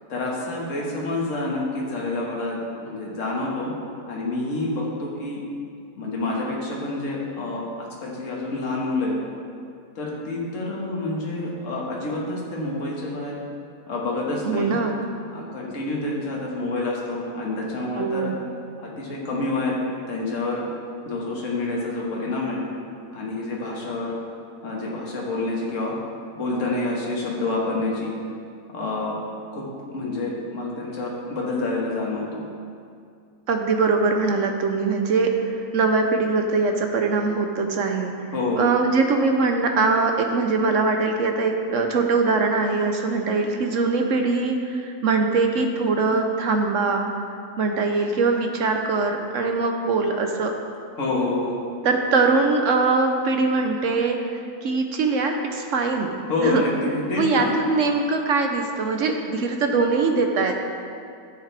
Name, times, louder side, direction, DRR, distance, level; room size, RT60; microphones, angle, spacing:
voice 1, 0.1-2.6 2.8-3.7 4.1-5.4 6.0-9.1 10.0-13.3 13.9-14.8 15.3-18.3 18.8-19.8 20.1-20.6 21.1-22.6 23.1-24.1 24.6-26.0 26.4-28.1 28.7-29.2 29.5-29.6 29.9-32.5 38.3-38.7 51.0-51.6 56.3-57.5, left 2 dB, 50° left, -3 dB, 1.8 m, -27 dB
voice 2, 14.4-14.9 18.0-18.3 33.5-38.1 38.6-47.1 47.6-50.5 51.8-56.1 56.4-56.6 57.2-60.7, right 4 dB, 60° right, 4 dB, 0.9 m, -22 dB
13.0 x 7.3 x 3.4 m, 2.3 s
omnidirectional pair, 1.8 m